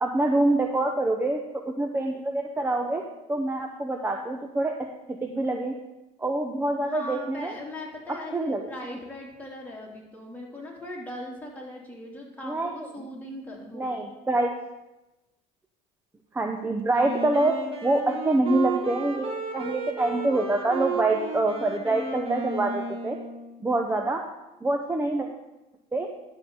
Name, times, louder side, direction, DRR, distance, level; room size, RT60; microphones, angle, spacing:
voice 1, 0.0-1.4 1.7-4.7 5.2-5.7 6.2-7.5 8.3-8.6 12.4-12.7 13.7-14.5 16.3-17.5 17.8-23.2 23.6-24.2 24.6-25.3 25.9-26.1, right 2 dB, 10° right, 3 dB, 0.9 m, -25 dB
voice 2, 6.8-14.0, left 1 dB, 10° left, -3 dB, 3.1 m, -39 dB
Wind instrument woodwind instrument, 16.9-23.6, right 4 dB, 35° right, 2.0 m, -33 dB
11.5 x 4.0 x 7.0 m, 0.99 s
supercardioid pair, 95°, 16 cm